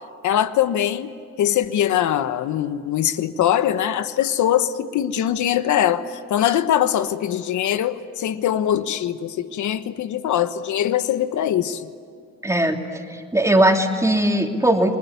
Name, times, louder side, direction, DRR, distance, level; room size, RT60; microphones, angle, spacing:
voice 1, 0.2-1.1 1.4-11.8, left 10 dB, 75° left, 11 dB, 1.3 m, -22 dB
voice 2, 12.4-14.9, right 1 dB, 10° right, 2 dB, 3.0 m, -19 dB
29.0 x 20.5 x 9.6 m, 2.3 s
cardioid pair, 90°, 30 cm